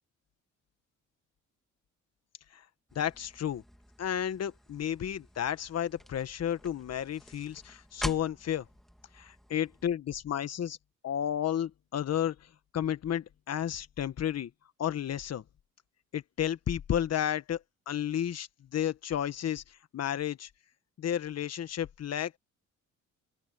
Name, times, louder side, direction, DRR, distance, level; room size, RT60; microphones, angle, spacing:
voice 1, 2.9-3.6 4.0-8.6 9.1-10.8 11.0-12.3 12.7-14.5 14.8-15.4 16.1-17.6 17.9-20.5 21.0-22.4, left 10 dB, 55° left, 1.4 m, -32 dB
sound 1, 2.9-9.9, equal, ahead, 2.2 m, -45 dB
open air
cardioid pair, 90°, 30 cm